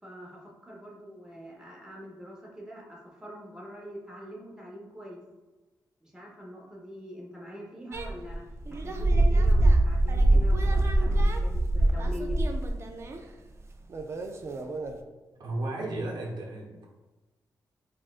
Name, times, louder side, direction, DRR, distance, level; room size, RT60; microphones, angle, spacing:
voice 1, 0.0-5.2 6.0-12.4, equal, 10° right, -3 dB, 0.9 m, -44 dB
sound 1, 7.9-13.2 13.9-14.9, right 1 dB, 35° right, 0.3 m, -24 dB
voice 2, 15.4-16.9, right 2 dB, 70° right, -2 dB, 0.8 m, -34 dB
4.1 x 2.4 x 2.4 m, 1.2 s
cardioid pair, 105°, 8 cm